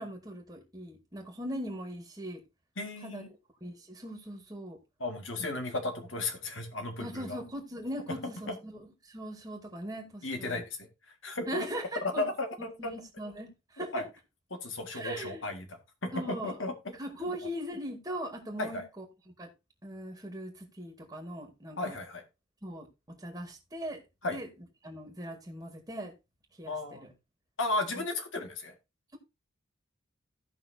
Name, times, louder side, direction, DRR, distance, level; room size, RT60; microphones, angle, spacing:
voice 1, 0.0-2.4 3.0-3.2 3.6-4.8 7.0-10.6 11.5-12.3 12.8-14.0 14.9-15.4 16.1-16.6 17.0-19.0 19.4-19.5 19.8-22.0 22.6-24.0 24.3-24.5 24.8-26.1 26.6-27.1 28.0-28.1, equal, 20° right, 1.8 m, -40 dB
voice 2, 2.8-3.3 5.0-7.4 8.1-8.2 8.5-8.6 10.2-11.7 12.0-12.9 13.8-14.0 14.5-16.9 18.6-18.8 21.8-22.2 24.2-24.4 26.7-27.1 27.6-28.7, left 2 dB, 70° left, 1.9 m, -35 dB
16.0 x 5.7 x 2.7 m
head